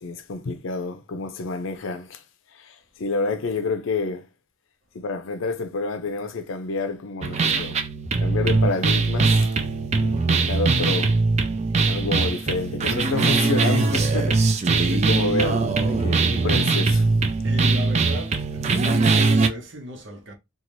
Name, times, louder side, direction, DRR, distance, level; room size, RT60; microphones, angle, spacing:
voice 1, 0.0-2.2 2.5-4.3 4.9-7.8 8.2-9.5 9.9-11.2 11.9-17.1, left 3 dB, 80° left, 0.5 m, -29 dB
sound 1, 7.2-19.5, right 3 dB, 35° right, 0.4 m, -21 dB
voice 2, 17.4-20.3, left 1 dB, 65° right, 0.8 m, -36 dB
2.6 x 2.4 x 3.0 m
head